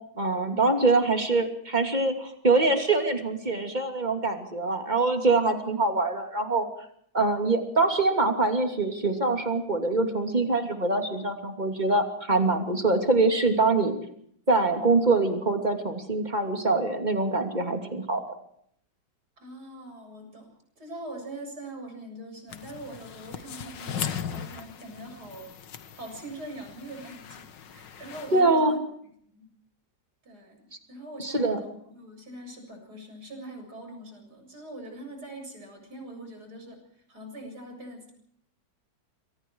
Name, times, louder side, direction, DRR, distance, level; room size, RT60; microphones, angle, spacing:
voice 1, 0.2-6.7 7.1-14.0 14.5-18.2 28.3-28.7 31.2-31.6, right 3 dB, 25° right, 5 dB, 3.0 m, -24 dB
voice 2, 19.4-29.5 30.2-38.1, right 1 dB, 60° right, 4 dB, 8.0 m, -43 dB
sound 1, 22.5-28.4, left 8 dB, 80° left, 2.0 m, -38 dB
28.0 x 24.0 x 4.8 m, 0.66 s
omnidirectional pair, 1.9 m